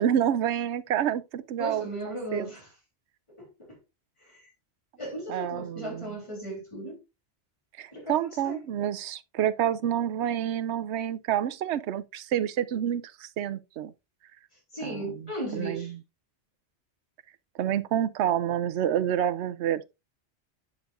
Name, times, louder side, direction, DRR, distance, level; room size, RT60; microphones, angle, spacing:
voice 1, 0.0-2.5 5.3-6.1 7.8-13.9 14.8-15.1 15.5-16.0 17.6-20.0, right 10 dB, 85° right, 0.9 m, -28 dB
voice 2, 1.6-2.7 3.3-3.8 4.2-4.5 5.0-7.0 7.9-8.6 14.7-15.9, right 1 dB, 25° left, 3.3 m, -37 dB
8.0 x 7.0 x 2.5 m
omnidirectional pair, 1.1 m